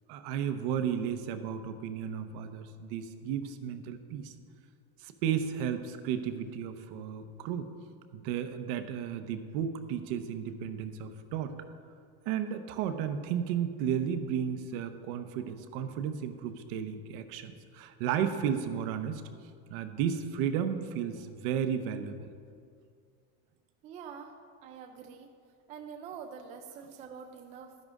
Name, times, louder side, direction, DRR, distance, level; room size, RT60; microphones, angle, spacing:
voice 1, 0.1-4.3 5.0-7.7 8.1-11.5 12.2-19.2 19.7-22.3, right 8 dB, 55° right, 9 dB, 0.8 m, -33 dB
voice 2, 23.8-24.3 24.6-25.3 25.7-27.8, right 6 dB, 25° right, 5 dB, 0.3 m, -45 dB
12.0 x 10.5 x 3.6 m, 2.3 s
cardioid pair, 170°, 33 cm